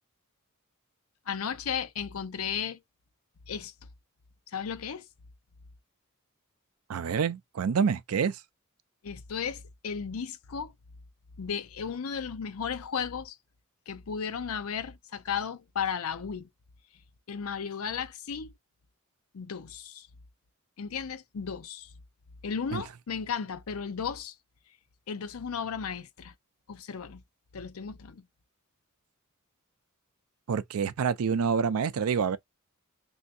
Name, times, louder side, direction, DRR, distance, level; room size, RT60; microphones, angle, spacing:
voice 1, 1.3-2.8 3.5-3.7 4.5-5.1 9.0-10.7 11.4-13.4 13.9-16.5 17.3-18.5 19.3-20.1 20.8-21.9 22.4-24.4 25.1-26.3 26.7-27.2 27.5-28.2, left 6 dB, 75° left, 0.6 m, -34 dB
voice 2, 6.9-8.4 22.7-22.8 30.5-32.4, right 6 dB, 85° right, 0.4 m, -27 dB
3.4 x 2.7 x 2.6 m
head